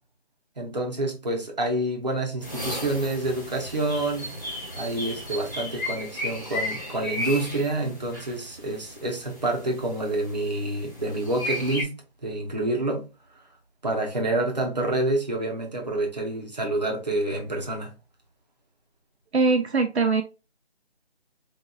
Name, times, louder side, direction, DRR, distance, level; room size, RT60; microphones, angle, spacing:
voice 1, 0.6-4.3 4.7-13.1 13.8-17.9, right 2 dB, 40° right, 0.9 m, -28 dB
sound 1, 2.4-11.8, left 1 dB, 20° left, 1.0 m, -35 dB
voice 2, 19.3-20.2, right 4 dB, 75° right, 0.6 m, -21 dB
3.9 x 2.6 x 2.2 m
figure-of-eight pair, 175°, 33 cm